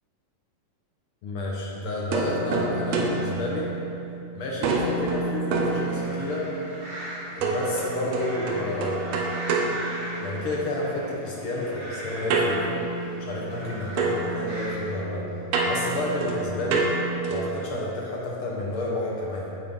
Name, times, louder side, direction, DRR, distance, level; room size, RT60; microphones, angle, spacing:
voice 1, 1.2-3.7 4.3-6.4 7.3-9.0 10.2-12.8 13.2-15.2 15.6-16.9 17.3-19.5, left 2 dB, 65° left, -4 dB, 1.4 m, -30 dB
sound 1, 2.1-4.2 4.6-6.5 7.4-10.6 12.3-13.7 14.0-17.6, right 3 dB, 75° right, 1.6 m, -28 dB
sound 2, 5.6-15.0, right 1 dB, 20° right, 1.6 m, -40 dB
9.4 x 8.3 x 3.8 m, 2.9 s
omnidirectional pair, 4.0 m